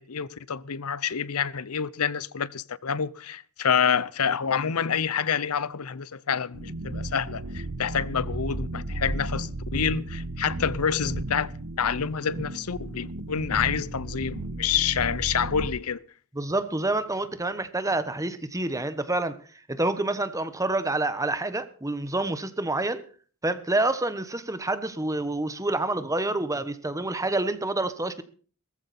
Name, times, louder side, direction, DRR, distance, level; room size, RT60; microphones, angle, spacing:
voice 1, 0.0-11.5 11.8-16.0, left 7 dB, 85° left, 0.7 m, -28 dB
sound 1, 6.5-15.7, right 2 dB, 85° right, 1.4 m, -34 dB
voice 2, 16.3-19.4 19.7-23.0 23.4-28.2, right 2 dB, 15° right, 1.1 m, -28 dB
18.0 x 14.5 x 4.2 m
head